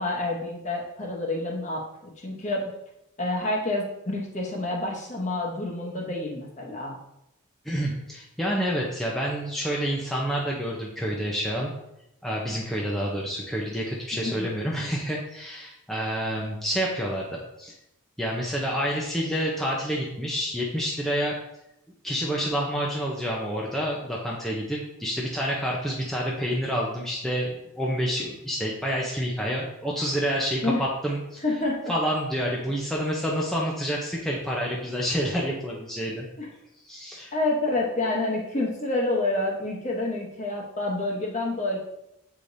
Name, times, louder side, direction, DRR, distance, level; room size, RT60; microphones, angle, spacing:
voice 1, 0.0-2.6 3.2-7.0 14.1-14.5 30.6-30.8 31.4-31.9 36.4-36.5 37.3-41.8, left 2 dB, 35° left, -1 dB, 1.0 m, -28 dB
voice 2, 7.6-11.7 12.2-17.7 18.2-21.4 22.0-31.4 31.9-36.3 36.9-37.3, equal, ahead, -4 dB, 0.6 m, -28 dB
7.4 x 4.9 x 2.7 m, 0.83 s
head